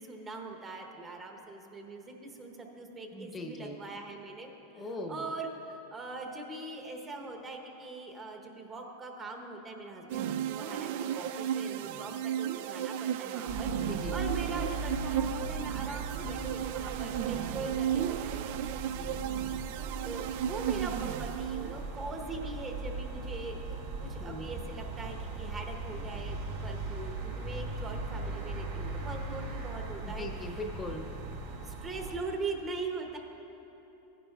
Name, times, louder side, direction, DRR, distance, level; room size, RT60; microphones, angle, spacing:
voice 1, 0.0-18.6 18.9-30.3 31.6-33.2, right 3 dB, 25° right, 3 dB, 1.0 m, -42 dB
voice 2, 3.1-3.7 4.7-5.3 13.9-14.2 24.2-24.5 30.0-31.1, left 2 dB, 20° left, 2 dB, 0.8 m, -40 dB
sound 1, 10.1-21.9, right 10 dB, 60° right, 0.3 m, -34 dB
sound 2, 13.5-32.2, right 3 dB, 75° right, 1.6 m, -39 dB
15.0 x 10.0 x 2.4 m, 3.0 s
supercardioid pair, 125°, 0 cm